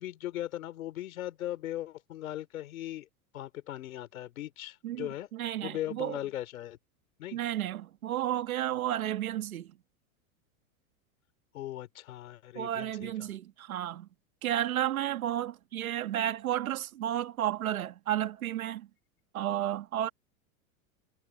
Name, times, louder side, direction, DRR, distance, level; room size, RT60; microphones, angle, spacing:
voice 1, 0.0-3.1 3.3-5.3 5.6-6.8 7.2-7.4 11.5-13.3, left 13 dB, 80° left, 4.0 m, -38 dB
voice 2, 4.8-6.2 7.3-9.7 12.5-14.1 14.4-18.9 19.3-20.1, right 12 dB, 85° right, 1.8 m, -32 dB
hypercardioid pair, 115°, 41 cm